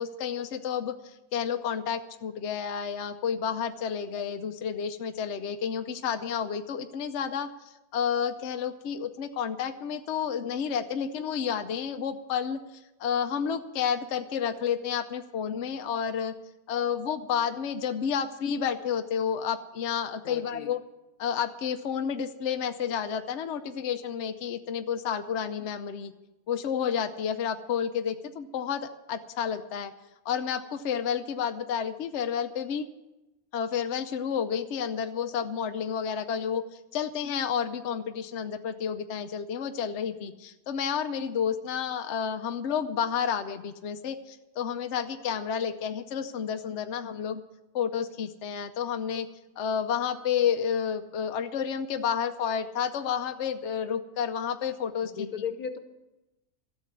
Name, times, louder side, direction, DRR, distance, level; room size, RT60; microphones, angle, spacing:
voice 1, 0.0-7.5 7.9-12.6 13.0-16.3 16.7-20.8 21.2-26.1 26.5-29.9 30.2-32.9 33.5-36.6 36.9-47.4 47.7-49.3 49.6-55.1, left 7 dB, 60° left, 7 dB, 0.9 m, -30 dB
voice 2, 20.2-20.7 55.1-55.8, left 7 dB, 85° left, 9 dB, 1.6 m, -35 dB
13.0 x 7.6 x 9.5 m, 0.99 s
omnidirectional pair, 1.5 m